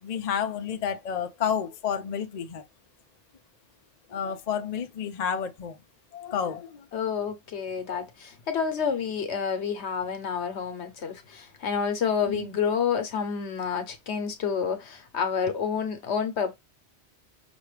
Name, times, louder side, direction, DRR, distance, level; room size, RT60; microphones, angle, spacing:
voice 1, 0.0-2.6 4.1-5.8 6.1-6.9 7.9-8.0 12.3-12.5, left 8 dB, 45° left, 0.6 m, -30 dB
voice 2, 6.9-16.6, left 6 dB, 75° left, 1.2 m, -29 dB
6.0 x 2.4 x 3.2 m
omnidirectional pair, 1.1 m